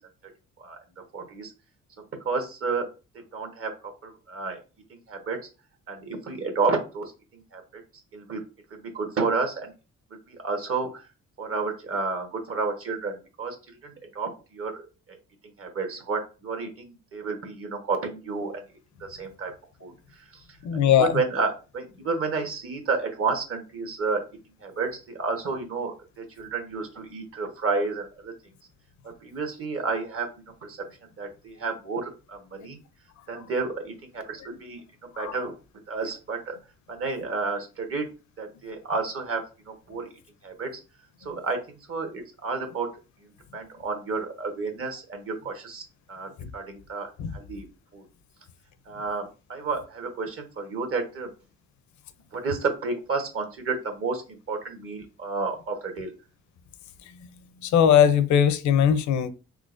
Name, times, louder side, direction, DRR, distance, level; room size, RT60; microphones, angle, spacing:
voice 1, 1.1-1.5 2.2-2.8 3.3-3.7 4.0-4.6 4.9-5.4 5.9-7.1 7.3-7.8 8.1-8.4 8.7-9.7 10.3-11.0 11.4-13.5 13.8-14.8 15.6-18.5 19.0-19.5 19.8-19.9 20.3-20.4 21.0-24.2 24.6-28.3 29.0-30.3 30.6-30.8 31.2-32.8 33.3-34.8 35.2-35.5 35.9-36.6 36.9-38.0 38.4-40.1 40.4-40.7 41.2-42.9 43.5-45.8 46.1-47.7 47.9-48.0 48.9-51.3 52.3-56.1, right 4 dB, 45° right, 1.1 m, -31 dB
voice 2, 20.6-21.2 32.6-32.7 33.3-33.4 35.1-35.4 46.4-46.5 47.2-47.4 57.0-57.3 57.6-59.3, left 9 dB, 70° left, 0.5 m, -21 dB
3.8 x 2.9 x 2.5 m
cardioid pair, 90°, 30 cm